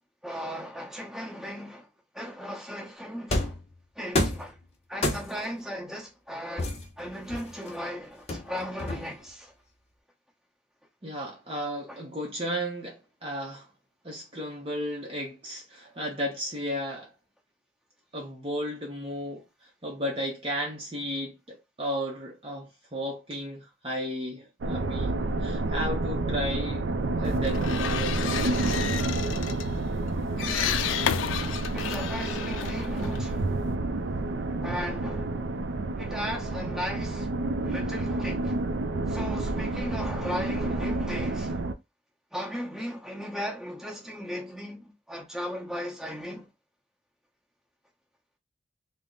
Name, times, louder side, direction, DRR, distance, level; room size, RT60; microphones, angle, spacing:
voice 1, 0.2-1.9 2.1-3.5 4.0-4.6 4.9-9.5 11.9-12.0 30.3-33.5 34.6-35.3 36.0-37.3 37.6-38.6 39.1-41.6 42.3-46.5, equal, 5° right, 0.9 m, -37 dB
sound 1, 3.3-3.7 4.1-4.5 5.0-5.5 6.6-7.7 8.3-9.3, left 1 dB, 35° left, 0.7 m, -29 dB
voice 2, 11.0-13.7 14.0-17.1 18.1-26.8 27.2-28.5, equal, 30° right, 0.6 m, -34 dB
sound 2, 24.6-41.7, right 2 dB, 70° right, 0.4 m, -29 dB
sound 3, 27.3-33.7, left 9 dB, 85° left, 0.3 m, -33 dB
3.5 x 2.0 x 3.8 m
head